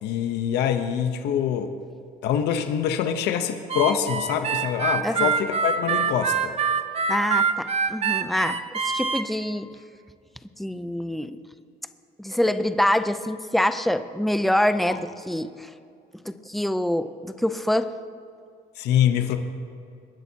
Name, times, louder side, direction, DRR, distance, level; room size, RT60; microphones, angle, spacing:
voice 1, 0.0-1.7 2.2-6.6 14.9-15.0 18.8-19.4, left 9 dB, 85° left, 7 dB, 0.9 m, -24 dB
Harmonica, 3.7-9.2, right 6 dB, 40° right, 0.8 m, -25 dB
voice 2, 7.1-9.7 10.6-11.4 12.2-15.7 16.2-17.9, left 1 dB, ahead, 11 dB, 0.5 m, -25 dB
23.0 x 10.5 x 2.9 m, 2.5 s
cardioid pair, 110°, 17 cm